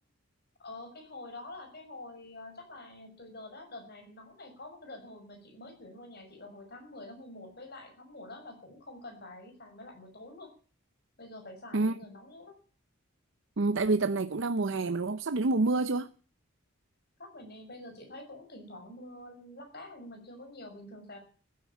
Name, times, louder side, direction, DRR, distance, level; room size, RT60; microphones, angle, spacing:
voice 1, 0.6-10.5 11.2-12.5 17.2-21.2, left 2 dB, 50° left, 6.0 m, -47 dB
voice 2, 13.6-16.1, right 3 dB, 60° right, 0.7 m, -27 dB
15.5 x 9.8 x 8.9 m
head